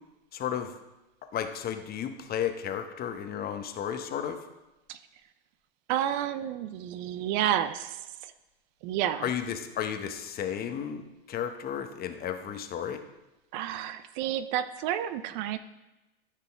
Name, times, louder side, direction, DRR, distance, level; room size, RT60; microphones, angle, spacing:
voice 1, 0.3-0.7 1.3-4.4 9.2-13.0, left 9 dB, 30° left, 7 dB, 1.0 m, -33 dB
voice 2, 5.9-8.3 8.8-9.3 13.5-15.6, right 11 dB, 50° right, 12 dB, 0.6 m, -30 dB
13.0 x 5.9 x 3.5 m, 1.0 s
hypercardioid pair, 90°, 29 cm